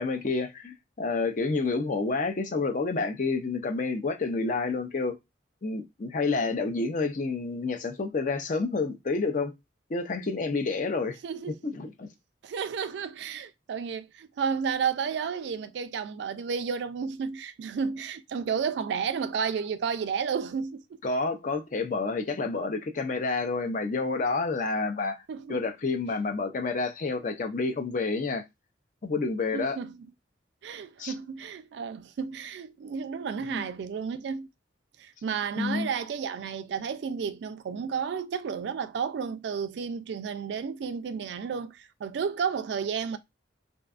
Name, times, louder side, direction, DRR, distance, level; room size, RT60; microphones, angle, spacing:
voice 1, 0.0-5.1 5.6-9.5 9.9-11.2 11.6-12.1 21.0-25.2 25.5-28.4 29.0-29.8 31.0-31.1 33.5-33.6 35.6-35.9, left 3 dB, 45° left, 0.5 m, -29 dB
voice 2, 11.2-11.5 12.4-21.0 25.3-25.6 29.5-30.0 30.6-34.5 35.0-43.2, right 6 dB, 70° right, 0.3 m, -32 dB
2.6 x 2.2 x 2.4 m
head